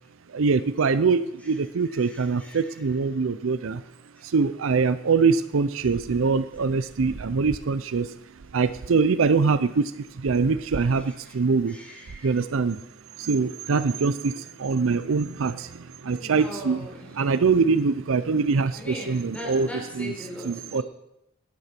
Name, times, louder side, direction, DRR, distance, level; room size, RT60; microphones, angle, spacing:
voice 1, 0.3-3.8 4.2-8.1 8.5-9.9 10.2-11.8 12.2-12.8 13.2-16.8 17.2-19.7 20.0-20.1 20.4-20.8, right 4 dB, 70° right, 14 dB, 0.5 m, -23 dB
voice 2, 1.9-2.8 4.2-4.3 10.7-11.3 11.7-12.4 16.1-17.1 18.7-20.8, left 1 dB, 5° left, -2 dB, 4.1 m, -40 dB
11.5 x 9.8 x 5.9 m, 0.84 s
head